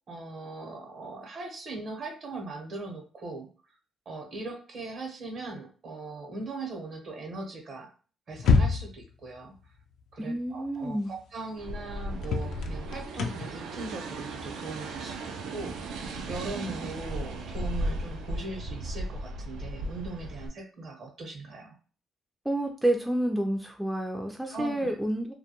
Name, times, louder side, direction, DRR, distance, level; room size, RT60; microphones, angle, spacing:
voice 1, 0.1-3.5 4.1-7.9 8.3-9.5 10.1-21.7 24.5-25.0, right 3 dB, 55° right, 2 dB, 0.8 m, -40 dB
sound 1, 8.3-9.1 10.9-11.0 11.4-11.5 12.2-15.8, left 4 dB, 75° left, 0.3 m, -27 dB
voice 2, 10.2-11.1 22.5-25.3, right 1 dB, 5° right, 2 dB, 0.3 m, -29 dB
sound 2, 11.6-20.5, right 1 dB, 90° right, 0.3 m, -36 dB
2.2 x 2.2 x 2.8 m, 0.38 s
cardioid pair, 90°, 0 cm